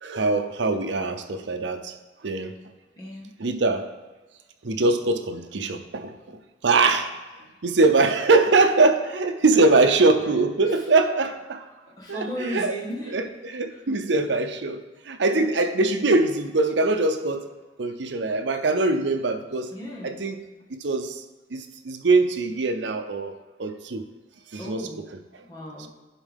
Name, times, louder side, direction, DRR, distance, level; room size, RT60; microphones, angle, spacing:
voice 1, 0.0-1.9 2.2-2.5 3.4-3.9 4.6-6.4 6.6-7.1 7.6-11.6 12.1-12.8 13.1-17.5 17.8-19.7 20.0-20.4 20.7-21.2 21.5-23.3 23.6-24.0 24.5-25.1 25.8-25.9, right 3 dB, 75° right, 7 dB, 0.6 m, -22 dB
voice 2, 3.0-3.3 9.6-9.7 12.0-13.1 19.7-20.2 24.6-25.0 25.5-25.9, equal, 20° left, -4 dB, 1.6 m, -35 dB
11.0 x 4.5 x 3.6 m, 1.2 s
head